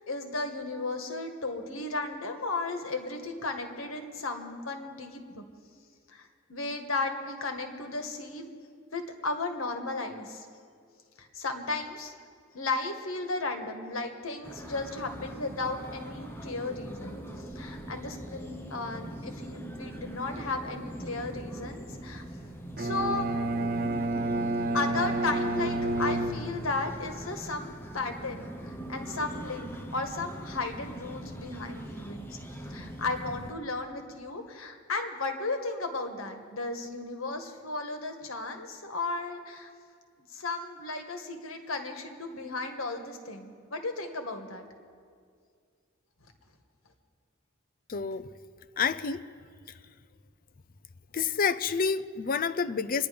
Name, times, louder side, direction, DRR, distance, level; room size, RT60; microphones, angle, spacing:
voice 1, 0.1-5.4 6.1-8.5 8.9-10.4 11.2-12.1 12.5-17.2 17.5-22.2 22.8-23.3 24.7-32.4 32.7-39.7 40.3-44.6, left 3 dB, 80° left, 5 dB, 1.6 m, -35 dB
sound 1, 14.4-33.5, right 1 dB, 10° left, 1.2 m, -42 dB
Bowed string instrument, 22.8-27.0, right 2 dB, 50° right, 0.7 m, -30 dB
voice 2, 47.9-48.3 48.8-49.2 51.1-53.1, left 5 dB, 45° left, 12 dB, 0.5 m, -28 dB
25.5 x 10.5 x 5.2 m, 2.1 s
head